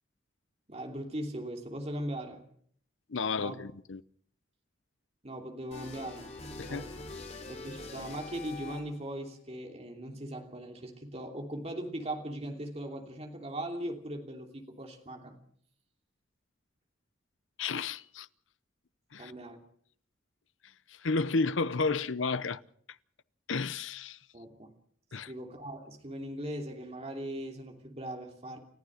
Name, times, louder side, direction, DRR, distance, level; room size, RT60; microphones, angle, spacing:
voice 1, 0.7-2.4 3.4-3.6 5.2-6.9 7.5-15.4 19.2-19.6 24.3-24.7 25.2-28.6, right 1 dB, 30° right, 3.0 m, -39 dB
voice 2, 3.1-4.0 6.6-6.8 17.6-18.3 19.1-19.3 20.9-22.6 23.5-24.2 25.1-25.3, left 4 dB, 75° left, 0.8 m, -32 dB
sound 1, 5.7-9.1, left 3 dB, 35° left, 4.2 m, -44 dB
29.5 x 14.5 x 6.5 m
head